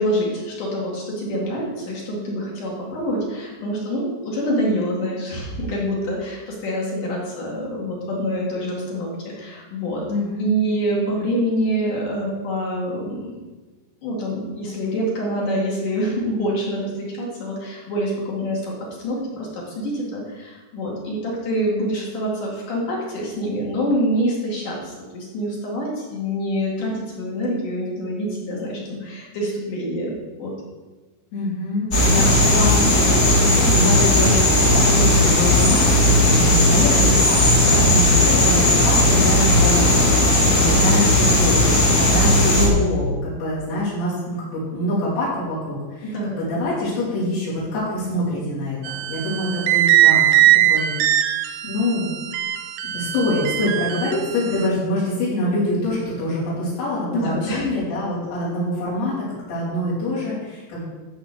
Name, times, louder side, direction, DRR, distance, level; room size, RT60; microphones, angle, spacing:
voice 1, 0.0-10.0 10.4-13.4 14.0-18.8 19.0-30.1 30.4-30.5 46.0-46.5 57.1-57.7, equal, 55° left, -4 dB, 3.2 m, -26 dB
voice 2, 10.1-10.7 31.3-50.2 50.7-52.1 52.9-59.1 59.5-60.8, left 1 dB, 90° left, -9 dB, 6.1 m, -25 dB
sound 1, 31.9-42.7, left 1 dB, 30° left, 1.5 m, -16 dB
sound 2, 48.8-54.7, right 13 dB, 75° right, 2.4 m, -20 dB
13.5 x 4.5 x 7.9 m, 1.3 s
omnidirectional pair, 4.9 m